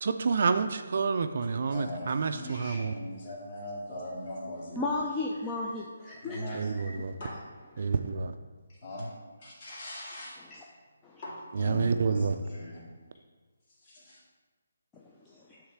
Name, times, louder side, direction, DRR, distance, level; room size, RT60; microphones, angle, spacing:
voice 1, 0.0-2.9 6.5-7.1 7.8-8.3 11.5-12.4, right 5 dB, 55° right, 8 dB, 0.4 m, -28 dB
voice 2, 1.7-5.0 6.2-6.9 7.2-7.4 7.8-8.2 8.7-10.4 11.2-12.9 13.7-14.2, left 1 dB, 40° left, -6 dB, 2.3 m, -41 dB
voice 3, 4.8-6.4 10.5-10.6 11.0-11.2 14.9-15.6, left 2 dB, 10° left, -3 dB, 0.4 m, -34 dB
8.0 x 3.2 x 5.8 m, 1.3 s
hypercardioid pair, 165°, 0 cm